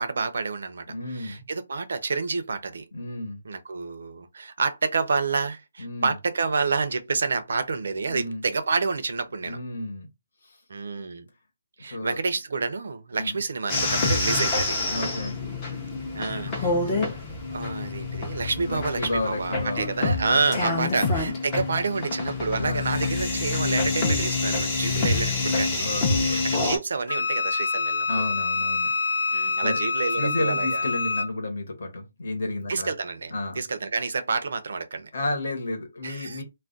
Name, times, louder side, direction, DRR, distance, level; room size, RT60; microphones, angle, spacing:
voice 1, 0.0-2.8 3.4-9.6 10.7-11.3 11.8-14.8 16.1-17.1 17.5-25.9 26.2-28.3 29.3-30.9 32.7-35.1 36.0-36.4, right 4 dB, 55° right, 0.5 m, -29 dB
voice 2, 0.9-1.5 2.9-3.4 5.8-6.1 8.1-8.4 9.4-10.1 10.4-10.5 11.0-11.1 11.9-12.2 13.1-13.4 14.9-15.4 18.6-21.0 22.6-22.9 25.8-26.4 28.1-28.9 29.6-29.8 30.2-32.9 33.3-33.6 35.1-36.4, left 2 dB, 45° left, 1.0 m, -32 dB
sound 1, 13.7-26.8, left 3 dB, 15° left, 0.6 m, -27 dB
Wind instrument woodwind instrument, 27.1-31.3, left 4 dB, 80° left, 0.4 m, -26 dB
2.3 x 2.1 x 3.8 m
hypercardioid pair, 180°, 0 cm